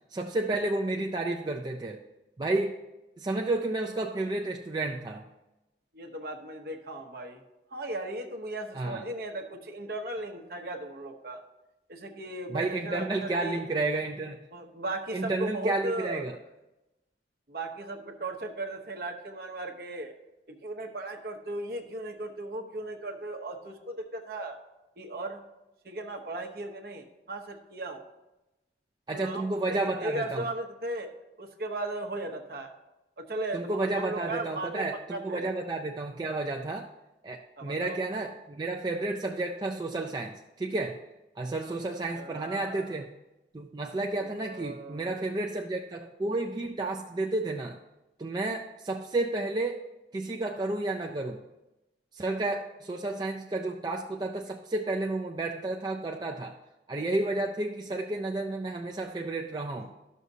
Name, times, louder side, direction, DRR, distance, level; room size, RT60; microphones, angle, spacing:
voice 1, 0.1-2.0 2.4-2.8 3.2-5.3 8.7-9.0 12.5-14.4 15.1-16.4 29.1-30.5 33.5-36.9 37.2-41.0 41.4-43.1 43.5-47.8 48.2-49.8 50.1-51.4 52.1-56.6 56.9-59.9, right 2 dB, 25° right, 1 dB, 0.3 m, -31 dB
voice 2, 5.9-7.4 7.7-11.4 11.9-13.6 14.5-16.2 17.5-20.1 20.5-24.6 25.0-25.4 25.8-28.1 29.1-31.1 31.4-32.7 33.2-35.5 37.6-38.0 41.7-41.8 42.1-43.0 44.1-45.2 59.8-59.9, right 2 dB, 55° right, 4 dB, 0.8 m, -37 dB
12.0 x 6.3 x 2.7 m, 0.99 s
head